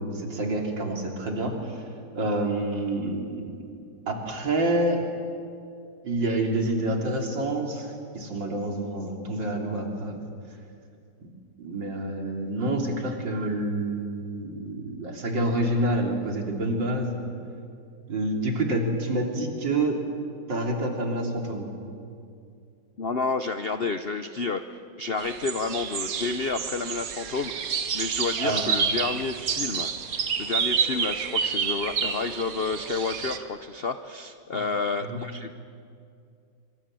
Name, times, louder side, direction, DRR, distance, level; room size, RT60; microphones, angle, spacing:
voice 1, 0.0-1.8 2.1-3.6 4.1-5.0 6.0-10.3 11.2-11.3 11.6-17.1 18.1-20.0 20.5-21.7 28.4-28.6 35.0-35.2, right 1 dB, 75° right, 1 dB, 3.8 m, -28 dB
voice 2, 23.0-29.9 30.4-35.6, left 4 dB, 60° left, 9 dB, 0.6 m, -30 dB
sound 1, 25.2-33.4, right 6 dB, 55° right, 1.4 m, -29 dB
25.5 x 24.5 x 7.6 m, 2.4 s
omnidirectional pair, 2.0 m